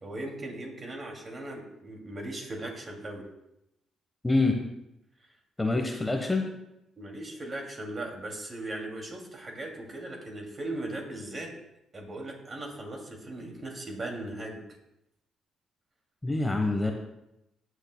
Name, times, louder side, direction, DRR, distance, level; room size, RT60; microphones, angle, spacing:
voice 1, 0.0-3.3 7.0-11.5 11.9-14.6, right 1 dB, 35° right, 1 dB, 2.4 m, -38 dB
voice 2, 5.6-6.5 16.2-16.9, left 2 dB, 15° left, 3 dB, 1.0 m, -25 dB
18.5 x 6.5 x 2.2 m, 0.86 s
cardioid pair, 80°, 0 cm